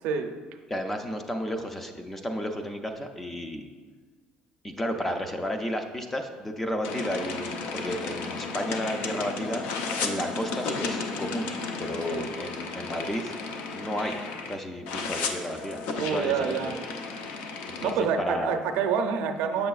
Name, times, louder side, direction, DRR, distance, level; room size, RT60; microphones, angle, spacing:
voice 1, 0.0-0.3 12.1-12.3 15.9-16.8 17.8-19.7, right 6 dB, 75° right, 5 dB, 0.5 m, -27 dB
voice 2, 0.7-3.7 4.6-9.6 10.0-11.5 11.8-13.3 13.7-14.2 14.5-16.6 17.7-18.6, equal, 10° left, 5 dB, 0.3 m, -32 dB
sound 1, 6.8-14.6 14.9-17.9, left 4 dB, 85° left, 0.6 m, -34 dB
7.6 x 6.4 x 2.3 m, 1.5 s
cardioid pair, 180°, 3 cm